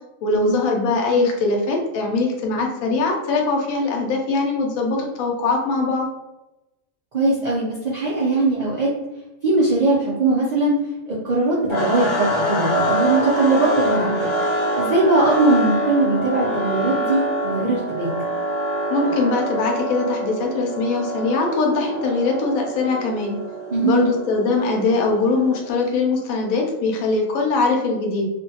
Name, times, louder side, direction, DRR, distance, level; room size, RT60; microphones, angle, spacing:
voice 1, 0.2-6.1 18.9-23.4 23.8-28.3, left 3 dB, 80° left, 1 dB, 1.0 m, -21 dB
voice 2, 7.1-8.9 9.4-10.8 11.1-14.3 14.8-18.1 23.7-24.1, right 2 dB, 70° right, -7 dB, 0.4 m, -20 dB
sound 1, 11.7-25.8, right 1 dB, 30° left, 0.6 m, -25 dB
2.5 x 2.2 x 2.7 m, 0.98 s
omnidirectional pair, 1.5 m